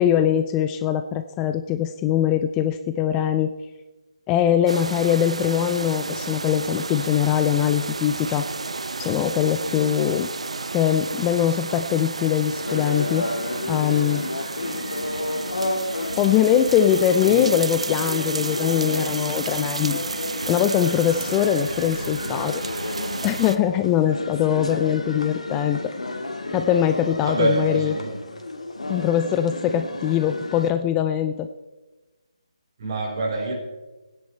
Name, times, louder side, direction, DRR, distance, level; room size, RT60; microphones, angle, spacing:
voice 1, 0.0-3.5 4.3-8.5 9.0-10.3 10.7-13.3 13.7-14.2 16.2-22.9 23.2-25.9 26.5-27.9 28.9-31.5, left 10 dB, 15° left, 9 dB, 0.3 m, -22 dB
sound 1, 4.7-23.6, right 3 dB, 70° right, 0.8 m, -32 dB
sound 2, 12.6-30.7, left 2 dB, 85° left, 1.9 m, -31 dB
voice 2, 27.2-28.2 32.8-33.5, right 2 dB, 45° right, -1 dB, 4.1 m, -25 dB
15.0 x 9.9 x 4.4 m, 1.2 s
figure-of-eight pair, 155°, 3 cm